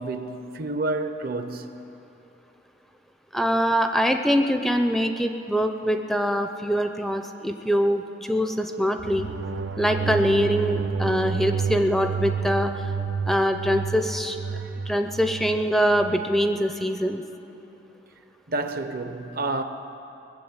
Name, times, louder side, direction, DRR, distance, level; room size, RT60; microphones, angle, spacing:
voice 1, 0.0-1.7 14.5-14.9 18.5-19.6, right 2 dB, 55° right, 0.8 m, -30 dB
voice 2, 3.3-9.3 9.8-12.7 13.3-14.4 14.9-17.2, equal, ahead, 0.4 m, -23 dB
sound 1, 9.0-16.3, right 5 dB, 85° right, 0.5 m, -30 dB
20.0 x 7.5 x 8.0 m
head